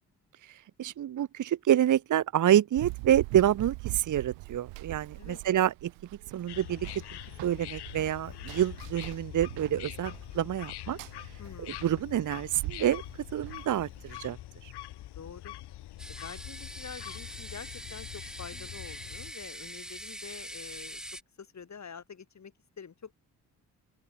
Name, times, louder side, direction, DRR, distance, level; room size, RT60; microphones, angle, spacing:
voice 1, 0.4-5.9 6.3-6.9 7.4-13.0 13.3-14.4 14.6-14.7, right 11 dB, 40° right, 1.1 m, -28 dB
Run, 2.8-14.1, right 29 dB, 65° right, 1.4 m, -43 dB
sound 1, 6.5-19.3, left 14 dB, 60° left, 2.3 m, -44 dB
voice 2, 11.4-11.8 15.1-15.6 16.1-21.0 21.4-23.1, left 6 dB, 35° left, 3.3 m, -46 dB
sound 2, 16.0-21.2, equal, ahead, 1.4 m, -43 dB
open air
figure-of-eight pair, 40°, 45 cm